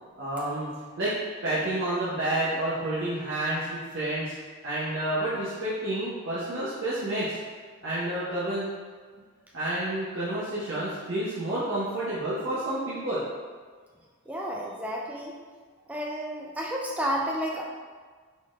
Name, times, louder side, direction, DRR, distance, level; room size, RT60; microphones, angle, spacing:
voice 1, 0.2-0.7 1.0-1.1 1.4-4.3 4.6-7.4 7.8-8.7 9.5-13.2, right 1 dB, 55° right, -10 dB, 0.8 m, -29 dB
voice 2, 14.3-15.3 15.9-17.6, equal, 5° right, -2 dB, 0.4 m, -31 dB
4.0 x 4.0 x 2.4 m, 1.5 s
head